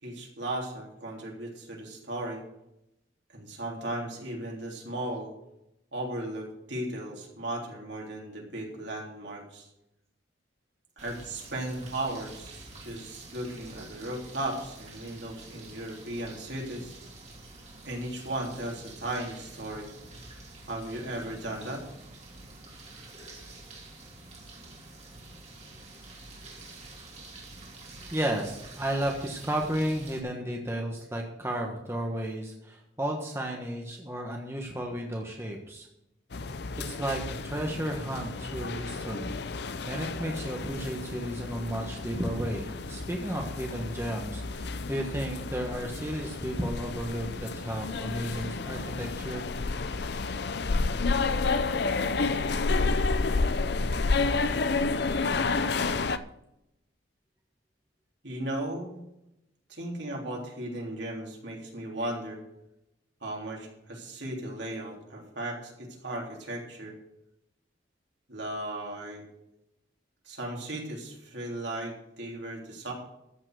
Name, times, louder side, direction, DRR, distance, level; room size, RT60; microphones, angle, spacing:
voice 1, 0.0-2.4 3.3-5.3 5.9-9.7 11.0-16.9 17.8-19.9 20.7-21.8 58.2-59.0 59.7-62.4 63.2-67.0 68.3-69.2 70.3-72.9, right 1 dB, 65° right, -1 dB, 3.6 m, -36 dB
sound 1, 11.0-30.2, right 2 dB, 35° right, 2.6 m, -48 dB
voice 2, 28.1-35.9 36.9-39.3 39.9-49.5 51.1-51.2, right 1 dB, 15° right, 0 dB, 1.3 m, -33 dB
sound 2, 36.3-56.2, left 3 dB, 55° left, 0.6 m, -30 dB
14.0 x 5.9 x 7.9 m, 0.85 s
head